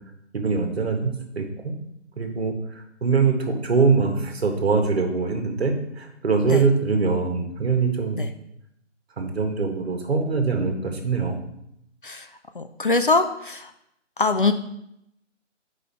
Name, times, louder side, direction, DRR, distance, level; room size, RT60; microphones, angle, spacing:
voice 1, 0.3-1.7 2.2-2.5 3.0-8.3 9.2-11.4, right 4 dB, 55° right, 4 dB, 1.5 m, -23 dB
voice 2, 12.6-13.7 14.2-14.5, left 3 dB, 45° left, 7 dB, 0.4 m, -22 dB
6.7 x 5.0 x 4.5 m, 0.78 s
figure-of-eight pair, 145°, 37 cm